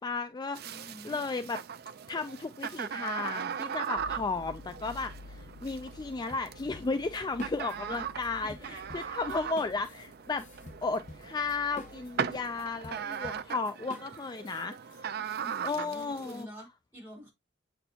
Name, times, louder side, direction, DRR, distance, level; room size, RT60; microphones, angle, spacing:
voice 1, 0.0-0.8 1.0-1.6 2.1-10.5 10.8-15.2 15.6-16.5, left 3 dB, 20° left, 0.3 m, -34 dB
sound 1, 0.5-16.4, right 7 dB, 55° right, 0.5 m, -39 dB
voice 2, 0.6-1.2 8.4-8.7 15.3-17.3, equal, 10° right, 4.3 m, -48 dB
sound 2, 4.0-13.0 13.2-13.4, left 2 dB, 70° left, 0.8 m, -52 dB
sound 3, 6.3-8.0 8.2-15.0, left 2 dB, 40° left, 1.2 m, -49 dB
7.9 x 4.3 x 2.8 m
head